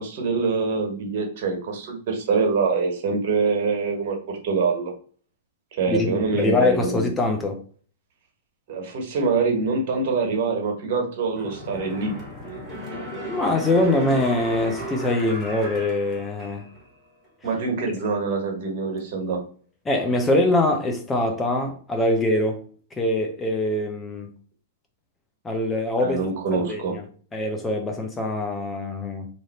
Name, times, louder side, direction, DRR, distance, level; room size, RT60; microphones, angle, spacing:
voice 1, 0.0-4.9 5.7-7.1 8.7-12.1 17.4-19.4 26.0-26.9, right 4 dB, 55° right, 1.4 m, -25 dB
voice 2, 5.9-7.6 13.3-16.7 19.9-22.6 23.0-24.3 25.4-26.2 26.5-27.0 27.3-29.3, left 2 dB, 15° left, 0.7 m, -23 dB
sound 1, 11.3-16.9 17.3-17.4, equal, 10° right, 1.8 m, -35 dB
3.0 x 2.6 x 4.1 m
hypercardioid pair, 115°, 0 cm